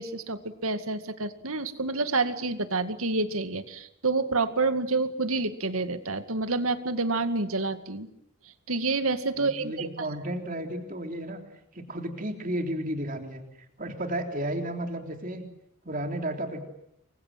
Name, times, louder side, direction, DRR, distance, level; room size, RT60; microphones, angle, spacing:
voice 1, 0.0-8.1 8.7-10.1, right 3 dB, 80° right, 10 dB, 2.1 m, -28 dB
voice 2, 9.4-11.4 11.7-13.4 13.8-15.5 15.9-16.7, right 1 dB, 40° right, 4 dB, 3.6 m, -33 dB
29.5 x 24.0 x 7.6 m, 0.75 s
head